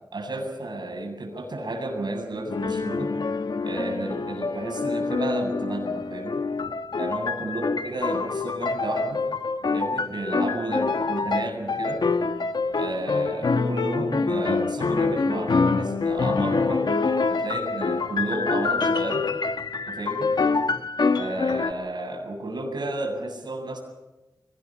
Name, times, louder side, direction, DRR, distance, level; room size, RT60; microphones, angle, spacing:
voice 1, 0.1-3.1 3.6-6.4 7.0-9.2 9.7-12.0 12.7-17.0 17.3-19.3 19.9-20.3 21.1-23.8, right 1 dB, 65° right, 2 dB, 7.8 m, -32 dB
sound 1, 2.5-21.7, left 4 dB, 65° left, 1.3 m, -26 dB
24.5 x 19.5 x 8.7 m, 1.1 s
wide cardioid pair, 80°, 8 cm